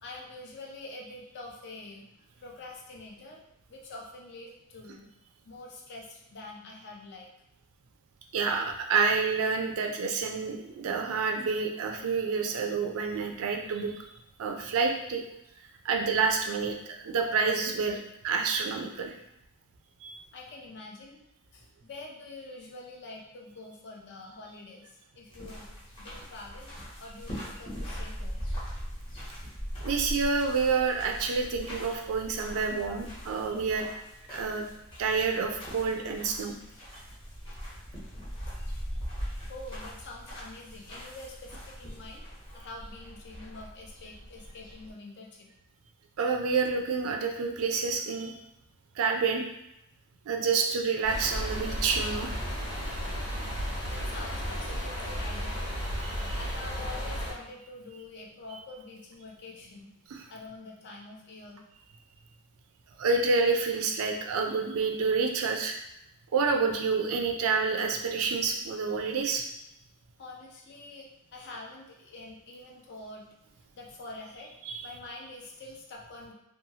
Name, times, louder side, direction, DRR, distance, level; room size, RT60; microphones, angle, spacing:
voice 1, 0.0-2.0 2.4-3.4 3.7-5.1 5.4-7.3 20.3-21.2 21.5-25.7 26.0-28.4 39.5-42.3 42.5-45.5 53.9-55.7 56.3-59.9 60.3-61.6 70.2-73.3 73.7-74.5 74.8-76.3, left 2 dB, 50° left, -1 dB, 0.5 m, -45 dB
voice 2, 8.3-14.0 14.4-15.2 15.8-19.1 20.0-20.2 29.8-33.9 34.3-34.7 35.0-36.5 46.2-48.3 49.0-49.4 50.3-52.3 56.0-56.4 60.1-60.2 63.0-65.7 66.3-69.4 74.7-74.8, right 4 dB, 65° right, 3 dB, 0.4 m, -28 dB
sound 1, 25.3-44.9, equal, 25° left, 0.9 m, -41 dB
sound 2, 51.0-57.3, equal, 85° left, 1.0 m, -33 dB
2.8 x 2.3 x 2.7 m, 0.86 s
head